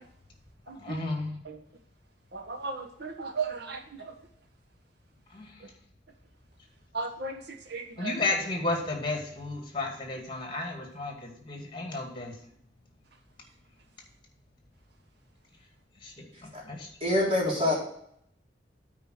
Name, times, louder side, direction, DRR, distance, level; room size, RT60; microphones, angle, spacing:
voice 1, 0.8-1.4 5.3-5.5 8.0-12.4 16.0-16.9, left 3 dB, 25° left, 2 dB, 2.2 m, -33 dB
voice 2, 2.3-3.8 6.9-7.3 7.7-8.1, right 4 dB, 60° right, 5 dB, 1.3 m, -34 dB
voice 3, 17.0-17.7, left 1 dB, 30° right, -5 dB, 3.7 m, -25 dB
8.9 x 4.8 x 6.5 m, 0.70 s
head